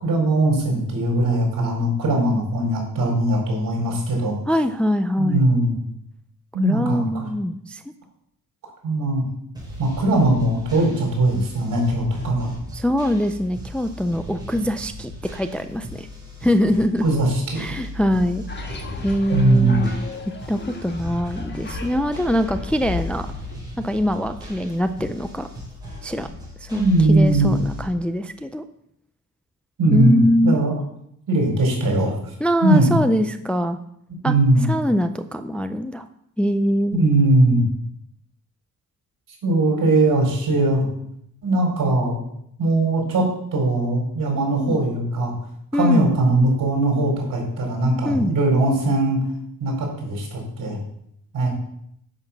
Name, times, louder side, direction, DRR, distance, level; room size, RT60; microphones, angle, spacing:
voice 1, 0.0-4.4 5.2-5.8 6.5-7.3 8.8-9.2 9.8-12.5 17.0-17.7 19.3-19.8 26.7-27.5 29.8-30.7 31.3-32.1 32.6-33.0 34.2-34.7 36.9-37.6 39.4-40.9 41.4-42.2 42.6-43.2 43.5-45.3 45.7-49.2 49.6-50.8 51.3-51.5, right 2 dB, 70° right, 0 dB, 4.5 m, -20 dB
voice 2, 4.5-5.5 6.6-7.8 12.7-16.1 16.4-17.0 17.6-18.4 19.0-19.9 20.5-23.3 23.8-25.5 26.0-26.3 26.6-28.6 29.9-30.6 32.4-33.8 34.2-34.3 34.7-36.1 36.4-37.0 44.6-44.8 45.7-46.1 48.0-48.3, equal, 5° left, 8 dB, 0.4 m, -23 dB
sound 1, 9.5-27.8, equal, 10° right, 3.9 m, -38 dB
sound 2, 18.5-23.5, left 3 dB, 30° left, 1.6 m, -34 dB
10.0 x 5.8 x 7.1 m, 0.73 s
wide cardioid pair, 150°, 34 cm